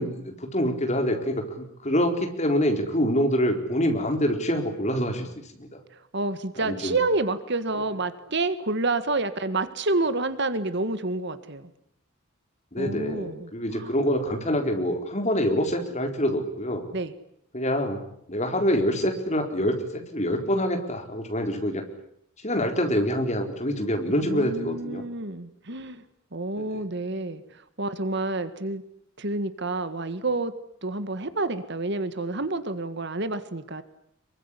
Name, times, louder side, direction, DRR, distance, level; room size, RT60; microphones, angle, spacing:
voice 1, 0.0-5.8 6.6-7.0 12.7-16.8 17.5-18.0 18.3-21.8 22.4-25.0 26.6-26.8, equal, 35° left, 4 dB, 4.3 m, -26 dB
voice 2, 6.1-11.7 12.8-13.9 16.9-17.1 24.2-26.0 26.3-27.4 27.8-28.8 29.2-30.5 30.8-33.8, right 2 dB, 55° right, 12 dB, 1.8 m, -29 dB
25.5 x 23.5 x 10.0 m, 0.72 s
head